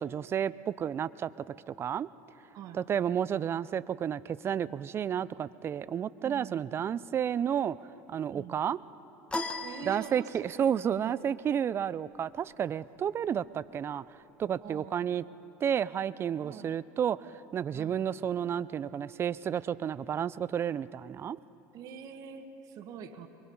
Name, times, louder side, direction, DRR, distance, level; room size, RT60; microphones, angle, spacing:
voice 1, 0.0-1.3 1.7-2.1 2.9-7.8 8.1-8.8 9.9-14.0 14.4-15.2 15.6-21.4, right 8 dB, 35° right, 17 dB, 0.5 m, -31 dB
voice 2, 6.2-6.7 8.3-8.6 9.6-10.7 11.0-11.3 14.6-15.0 16.4-16.7 17.7-18.0 21.7-23.3, right 7 dB, 55° right, 6 dB, 1.5 m, -44 dB
sound 1, 9.3-10.7, left 2 dB, 15° left, 1.3 m, -37 dB
24.0 x 22.5 x 5.5 m, 2.9 s
supercardioid pair, 95°, 7 cm